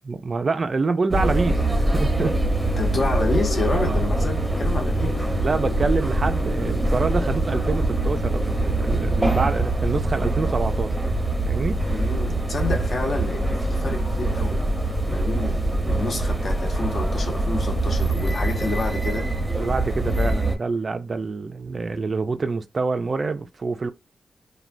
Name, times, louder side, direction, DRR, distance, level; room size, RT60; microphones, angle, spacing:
voice 1, 0.0-2.4 3.7-4.0 5.4-11.0 11.5-11.8 19.5-23.9, right 4 dB, 40° right, 0.3 m, -26 dB
sound 1, 1.1-20.6, right 1 dB, 10° right, 0.7 m, -23 dB
voice 2, 2.8-5.3 11.9-14.6 15.1-19.3, left 3 dB, 45° left, 0.7 m, -29 dB
3.1 x 2.2 x 2.5 m
wide cardioid pair, 135°, 0 cm